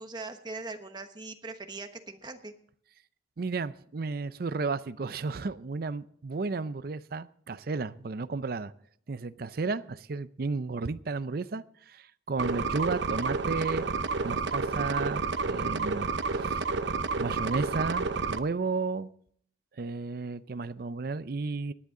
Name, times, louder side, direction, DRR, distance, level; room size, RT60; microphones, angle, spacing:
voice 1, 0.0-2.5, right 3 dB, 25° right, 7 dB, 1.2 m, -41 dB
voice 2, 3.4-8.7 9.1-13.9 14.2-16.1 16.4-16.6 17.2-19.1 19.8-21.7, right 4 dB, 55° right, 14 dB, 0.5 m, -33 dB
sound 1, 12.4-18.4, right 4 dB, 80° right, 0.8 m, -30 dB
18.5 x 10.5 x 3.8 m, 0.62 s
head